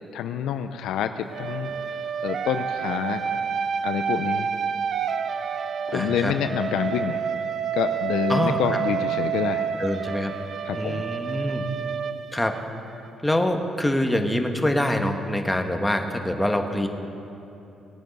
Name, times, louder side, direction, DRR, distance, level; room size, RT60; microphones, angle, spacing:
voice 1, 0.1-1.7 2.2-3.2 3.8-4.5 5.9-7.2 7.7-9.7 10.6-11.1, left 8 dB, 85° left, 9 dB, 0.5 m, -27 dB
sound 1, 1.3-13.1, right 7 dB, 55° right, 0.7 m, -29 dB
voice 2, 5.9-6.3 8.3-8.8 9.8-10.3 10.7-11.6 12.3-12.5 13.2-16.9, left 1 dB, 10° left, 4 dB, 1.3 m, -25 dB
19.5 x 9.2 x 5.3 m, 2.9 s
cardioid pair, 90°, 0 cm